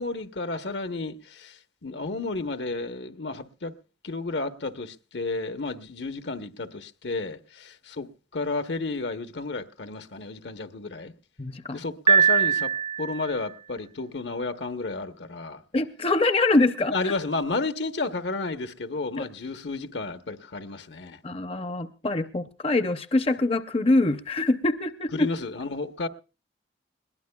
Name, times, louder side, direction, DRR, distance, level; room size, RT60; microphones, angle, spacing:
voice 1, 0.0-3.8 4.0-11.1 11.7-12.7 13.0-15.6 16.9-21.2 25.1-26.1, left 3 dB, 75° left, 1.0 m, -32 dB
voice 2, 11.4-11.8 15.7-17.1 21.2-25.3, left 2 dB, 30° left, 0.6 m, -24 dB
Piano, 12.1-13.4, right 7 dB, 30° right, 0.6 m, -21 dB
21.5 x 18.0 x 2.3 m
head